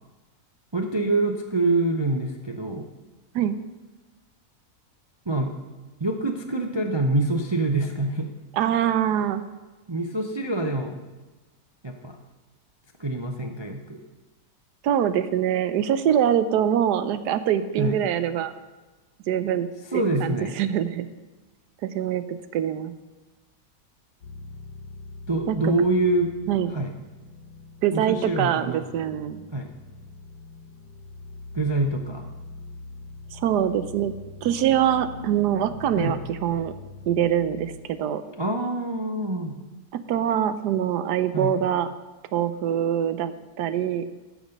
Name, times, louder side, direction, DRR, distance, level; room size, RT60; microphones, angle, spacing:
voice 1, 0.7-2.8 5.3-5.5 6.0-8.3 9.9-11.0 11.8-12.2 13.0-14.0 17.8-18.0 19.9-20.6 25.3-26.3 26.7-26.9 27.9-28.8 29.5-29.7 31.5-32.2 36.0-36.2 38.4-39.6 41.3-41.5, right 2 dB, 30° right, 2 dB, 0.4 m, -25 dB
voice 2, 8.5-9.5 14.8-18.5 19.3-21.1 21.8-22.9 25.5-25.7 26.5-26.7 27.8-29.4 33.3-34.1 34.4-36.7 37.1-38.2 40.1-41.9 42.3-43.3 43.6-44.0, right 10 dB, 85° right, 12 dB, 1.2 m, -24 dB
sound 1, 24.2-37.8, left 3 dB, 65° left, 1.4 m, -43 dB
14.0 x 6.2 x 5.3 m, 1.2 s
omnidirectional pair, 1.7 m